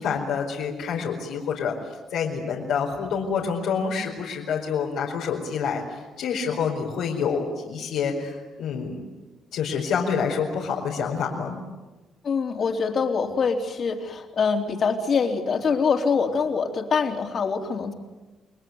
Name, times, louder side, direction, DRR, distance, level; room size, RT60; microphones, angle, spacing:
voice 1, 0.0-9.0 9.5-11.6, left 6 dB, 85° left, -3 dB, 4.7 m, -27 dB
voice 2, 12.2-17.9, left 5 dB, 50° left, 3 dB, 3.5 m, -24 dB
29.5 x 21.0 x 9.6 m, 1.2 s
cardioid pair, 90°, 0 cm